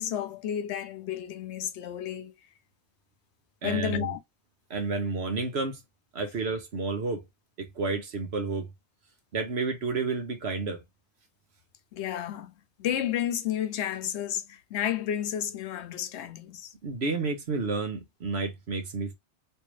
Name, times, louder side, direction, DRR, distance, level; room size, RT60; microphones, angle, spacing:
voice 1, 0.0-2.3 3.6-4.2 11.9-12.5 12.8-16.7, left 10 dB, 85° left, 0.9 m, -31 dB
voice 2, 3.6-4.2 4.7-5.8 6.1-7.3 7.6-8.7 9.3-10.8 16.8-19.1, right 4 dB, 75° right, 1.3 m, -30 dB
3.4 x 2.7 x 3.1 m
omnidirectional pair, 1.1 m